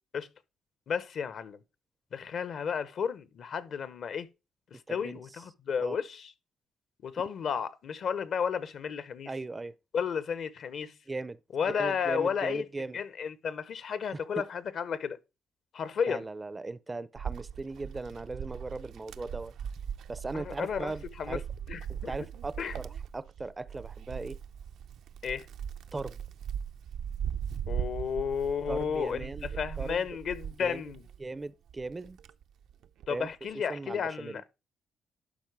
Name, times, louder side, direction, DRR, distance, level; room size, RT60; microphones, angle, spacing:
voice 1, 0.9-1.6 2.1-4.3 4.7-6.3 7.0-9.3 9.9-10.9 11.5-12.7 12.9-15.2 15.7-16.2 20.3-20.9 21.2-21.4 21.7-22.1 22.6-22.7 25.2-25.5 27.7-31.0 33.1-34.6, left 7 dB, 60° left, 0.8 m, -33 dB
voice 2, 4.9-5.2 5.8-6.0 9.3-9.7 11.1-11.4 11.7-13.0 14.1-14.5 16.0-19.5 20.1-21.4 21.9-24.4 25.9-26.2 28.7-29.5 29.8-30.1 30.6-30.8 31.2-32.2 33.1-33.3 33.7-34.4, right 3 dB, 20° right, 0.4 m, -38 dB
Wind, 17.1-31.3 31.7-33.2, right 8 dB, 75° right, 0.5 m, -39 dB
11.5 x 4.4 x 4.7 m
cardioid pair, 90°, 0 cm